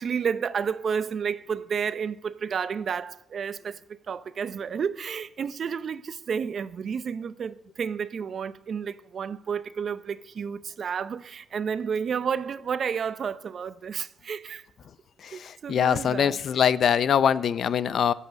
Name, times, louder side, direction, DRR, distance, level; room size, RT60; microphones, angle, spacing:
voice 1, 0.0-14.7 15.3-16.4, right 6 dB, 50° right, 0.7 m, -31 dB
voice 2, 15.2-18.1, left 8 dB, 60° left, 0.6 m, -23 dB
10.5 x 8.5 x 9.4 m
cardioid pair, 90°, 0 cm